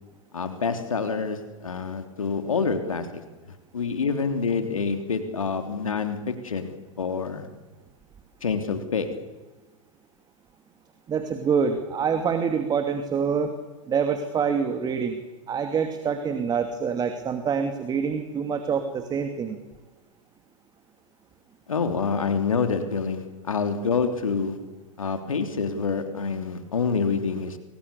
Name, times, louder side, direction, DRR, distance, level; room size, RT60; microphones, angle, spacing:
voice 1, 0.3-3.2 3.7-7.5 8.4-9.2 21.7-24.7 25.0-27.6, left 5 dB, 80° left, 7 dB, 3.2 m, -27 dB
voice 2, 11.1-13.5 13.9-15.2 15.5-19.6, right 6 dB, 25° right, 7 dB, 2.6 m, -26 dB
29.5 x 24.5 x 6.9 m, 1.2 s
figure-of-eight pair, 100°, 17 cm